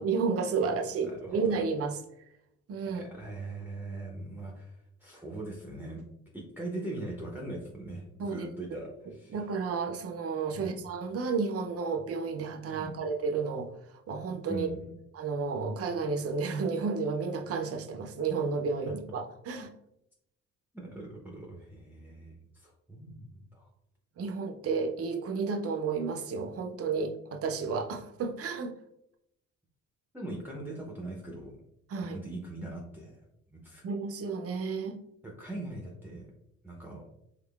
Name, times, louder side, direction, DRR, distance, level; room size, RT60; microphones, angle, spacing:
voice 1, 0.0-1.9 2.7-3.0 8.2-8.5 9.3-13.7 14.1-14.7 15.1-19.7 24.2-28.7 31.9-32.2 33.8-35.0, right 5 dB, 50° right, 5 dB, 0.6 m, -32 dB
voice 2, 0.6-1.6 2.9-6.1 6.3-9.4 10.5-10.9 12.7-12.9 14.5-15.0 18.8-18.9 20.7-23.7 30.1-31.6 32.0-33.2 33.5-33.8 35.2-36.3 36.6-37.0, right 2 dB, 5° right, -1 dB, 0.6 m, -41 dB
3.6 x 3.4 x 2.3 m, 0.79 s
cardioid pair, 90°, 30 cm